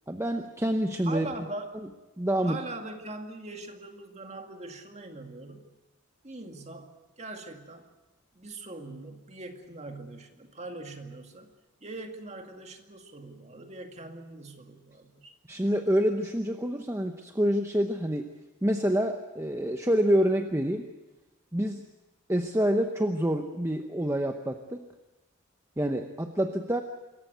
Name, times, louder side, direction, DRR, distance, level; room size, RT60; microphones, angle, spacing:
voice 1, 0.1-1.3 2.2-2.6 15.5-18.3 18.6-20.9 21.5-21.8 22.3-24.9 25.8-26.8, equal, 10° right, 5 dB, 0.8 m, -27 dB
voice 2, 1.1-1.7 2.4-5.7 6.2-7.9 8.3-11.5 11.8-15.3, right 2 dB, 30° right, 4 dB, 2.2 m, -41 dB
26.0 x 15.0 x 9.3 m, 1.1 s
head